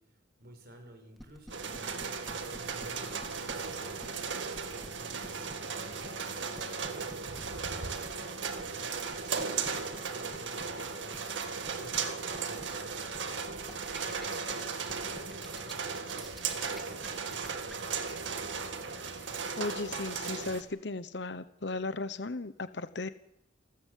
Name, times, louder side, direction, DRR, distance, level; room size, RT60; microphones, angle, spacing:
voice 1, 0.0-16.2 16.6-18.7, equal, 55° right, 4 dB, 6.0 m, -54 dB
sound 1, 1.2-17.7, equal, ahead, 2.1 m, -49 dB
sound 2, 1.5-20.6, right 5 dB, 75° right, 2.1 m, -36 dB
voice 2, 19.6-23.1, left 3 dB, 60° left, 13 dB, 1.0 m, -36 dB
28.5 x 13.5 x 8.4 m, 0.80 s
head